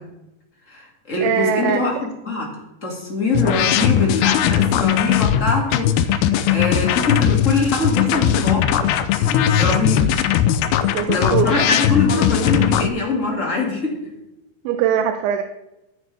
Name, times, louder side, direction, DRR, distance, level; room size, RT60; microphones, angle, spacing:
voice 1, 0.7-1.9 2.2-2.5 2.8-8.9 9.2-10.1 10.8-14.0, left 3 dB, 30° left, -2 dB, 1.5 m, -23 dB
voice 2, 1.2-1.8 10.9-11.6 14.7-15.4, right 9 dB, 85° right, 7 dB, 3.1 m, -21 dB
sound 1, 3.3-12.9, left 10 dB, 80° left, 2.3 m, -19 dB
15.5 x 9.7 x 3.5 m, 0.93 s
omnidirectional pair, 5.2 m